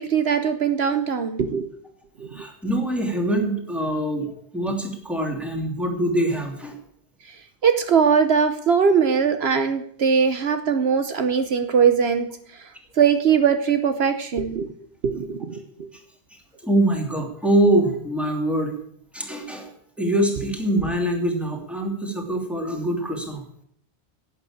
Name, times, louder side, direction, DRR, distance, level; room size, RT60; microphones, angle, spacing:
voice 1, 0.0-1.7 2.2-2.4 7.6-12.3 12.6-12.7 13.0-14.7 15.0-15.9, right 6 dB, 70° right, 8 dB, 1.2 m, -21 dB
voice 2, 2.3-6.8 15.9-16.0 16.3-18.7 19.1-19.7 20.0-23.4, right 1 dB, ahead, 2 dB, 2.6 m, -24 dB
11.0 x 9.3 x 8.6 m, 0.67 s
omnidirectional pair, 1.1 m